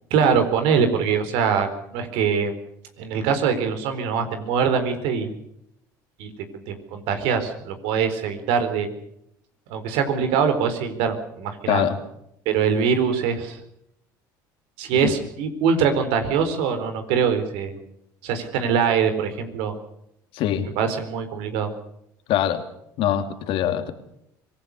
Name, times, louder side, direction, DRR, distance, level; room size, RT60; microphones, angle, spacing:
voice 1, 0.1-2.5 3.0-5.4 6.2-6.3 6.7-9.0 9.7-11.8 12.5-13.6 14.8-17.7 18.2-19.8 20.8-21.7, right 6 dB, 75° right, 8 dB, 4.2 m, -23 dB
voice 2, 11.7-12.0 14.9-15.1 20.3-20.7 22.3-22.7 23.0-23.9, left 11 dB, 65° left, 8 dB, 2.8 m, -23 dB
25.0 x 19.0 x 6.7 m, 0.77 s
hypercardioid pair, 75°, 10 cm